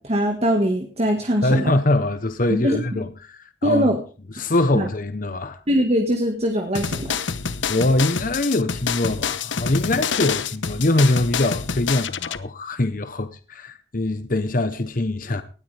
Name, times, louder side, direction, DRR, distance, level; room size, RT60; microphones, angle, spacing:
voice 1, 0.0-1.7 2.6-3.0 3.6-4.0 4.7-4.9 5.7-7.2, equal, 35° right, 1.7 m, -22 dB
voice 2, 1.4-3.9 4.4-5.6 7.7-15.4, left 2 dB, 45° left, 0.9 m, -23 dB
sound 1, 6.7-12.4, left 6 dB, 90° left, 1.0 m, -27 dB
19.0 x 13.0 x 3.4 m
head